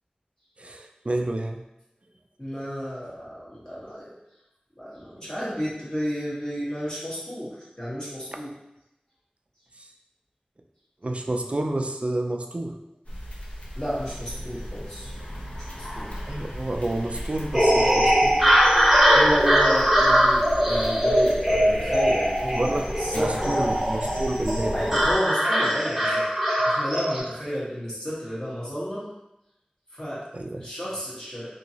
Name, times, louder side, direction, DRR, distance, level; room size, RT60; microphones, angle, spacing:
voice 1, 0.6-1.6 9.8-9.9 11.0-12.8 16.3-18.4 22.5-24.8 30.3-30.7, right 1 dB, 45° right, 3 dB, 0.3 m, -29 dB
voice 2, 2.4-4.1 4.8-8.5 13.7-15.1 15.7-16.1 19.1-23.7 24.7-29.1 29.9-30.3 30.6-31.5, equal, 25° left, -8 dB, 1.4 m, -32 dB
sound 1, 13.1-25.1, equal, 50° left, 0.8 m, -36 dB
sound 2, 17.5-27.2, equal, 5° right, 1.2 m, -21 dB
2.9 x 2.6 x 2.8 m, 0.87 s
wide cardioid pair, 45°, 3 cm